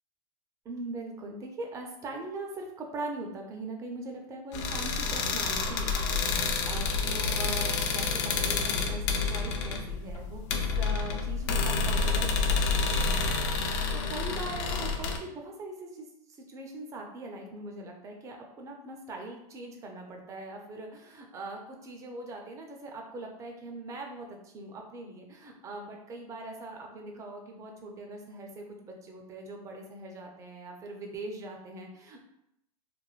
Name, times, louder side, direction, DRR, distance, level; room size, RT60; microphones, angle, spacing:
voice 1, 0.6-32.2, right 2 dB, 15° right, 2 dB, 0.4 m, -41 dB
sound 1, 4.5-15.2, left 4 dB, 50° left, 0.5 m, -29 dB
3.1 x 2.1 x 2.3 m, 0.80 s
supercardioid pair, 140°, 19 cm